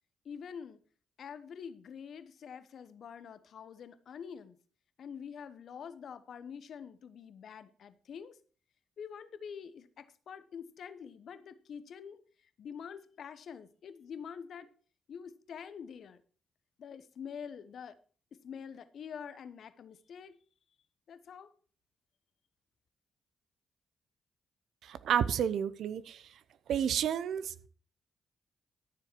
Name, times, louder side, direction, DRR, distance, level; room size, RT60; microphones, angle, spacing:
voice 1, 0.2-0.8 1.2-4.6 5.0-8.3 9.0-12.2 12.6-14.7 15.1-16.2 16.8-17.9 18.4-20.4 21.1-21.5, left 7 dB, 65° left, 1.0 m, -46 dB
voice 2, 24.8-26.2 26.7-27.7, right 9 dB, 75° right, 0.7 m, -31 dB
13.5 x 7.0 x 4.6 m
hypercardioid pair, 45°, 0 cm